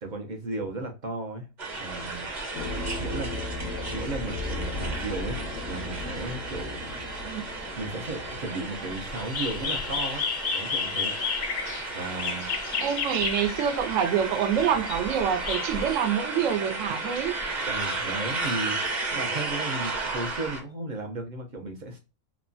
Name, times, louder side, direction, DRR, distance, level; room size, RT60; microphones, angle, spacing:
voice 1, 0.0-1.5 1.8-2.3 3.0-3.3 3.9-7.2 7.8-10.3 10.5-11.1 11.9-12.5 17.6-18.8 19.1-22.0, right 2 dB, 55° right, 0.5 m, -35 dB
sound 1, 1.6-20.6, right 3 dB, 40° right, 1.0 m, -34 dB
sound 2, 2.5-8.9, left 2 dB, 90° left, 1.0 m, -36 dB
sound 3, 9.1-14.0 14.7-16.1, left 6 dB, 60° left, 0.6 m, -31 dB
voice 2, 12.8-17.4, right 8 dB, 80° right, 1.0 m, -26 dB
3.0 x 2.1 x 2.4 m
omnidirectional pair, 1.3 m